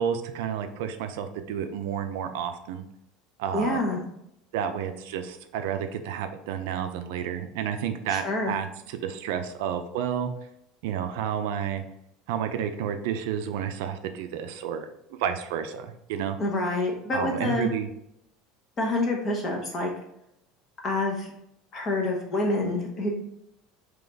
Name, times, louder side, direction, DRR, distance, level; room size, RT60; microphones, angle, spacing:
voice 1, 0.0-2.8 3.4-3.8 4.5-10.3 10.8-11.8 12.3-16.4 17.1-17.9, right 8 dB, 70° right, 8 dB, 0.4 m, -31 dB
voice 2, 3.5-4.0 8.1-8.6 16.4-17.7 18.8-19.9 20.8-21.3 21.7-23.1, left 2 dB, 20° left, 0 dB, 0.8 m, -27 dB
3.9 x 3.0 x 3.4 m, 0.78 s
cardioid pair, 180°, 0 cm